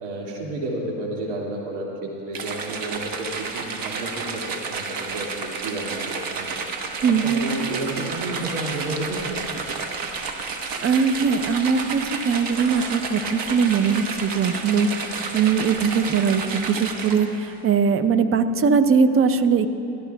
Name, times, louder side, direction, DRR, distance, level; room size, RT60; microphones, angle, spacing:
voice 1, 0.0-6.9 7.2-9.4, right 2 dB, 80° right, -2 dB, 2.4 m, -31 dB
sound 1, 2.3-17.5, right 4 dB, 45° right, 1.2 m, -31 dB
voice 2, 7.0-7.5 10.8-19.7, right 5 dB, 30° right, 10 dB, 0.6 m, -21 dB
22.5 x 13.5 x 2.3 m, 2.8 s
supercardioid pair, 95°, 49 cm